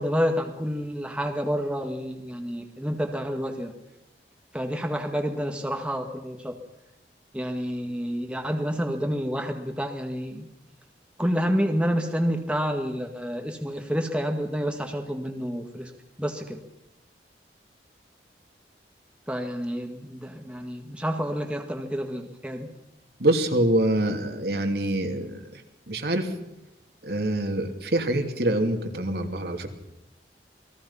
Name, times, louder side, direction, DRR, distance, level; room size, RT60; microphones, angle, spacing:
voice 1, 0.0-3.7 4.5-6.6 7.3-10.5 11.2-15.9 16.2-16.6 19.3-22.7, equal, 5° right, 3 dB, 1.8 m, -29 dB
voice 2, 23.2-25.6 25.9-26.3 27.0-29.7, right 1 dB, 65° right, 4 dB, 2.8 m, -25 dB
28.5 x 20.5 x 5.7 m, 0.90 s
head